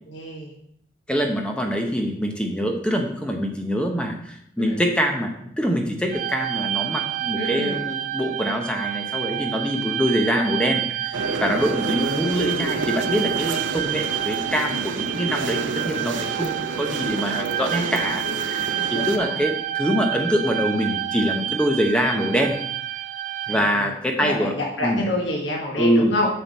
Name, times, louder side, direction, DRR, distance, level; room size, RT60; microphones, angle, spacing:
voice 1, 0.1-0.5 4.6-4.8 7.3-7.8 18.7-19.4 23.5-26.3, left 1 dB, 80° left, -1 dB, 1.4 m, -28 dB
voice 2, 1.1-22.6 23.5-24.6 24.8-25.0 25.8-26.3, equal, 5° left, 2 dB, 0.7 m, -24 dB
sound 1, 6.1-23.6, right 12 dB, 40° right, 0.3 m, -29 dB
sound 2, 11.1-19.2, right 3 dB, 85° right, 0.6 m, -29 dB
7.8 x 5.8 x 4.1 m, 0.72 s
head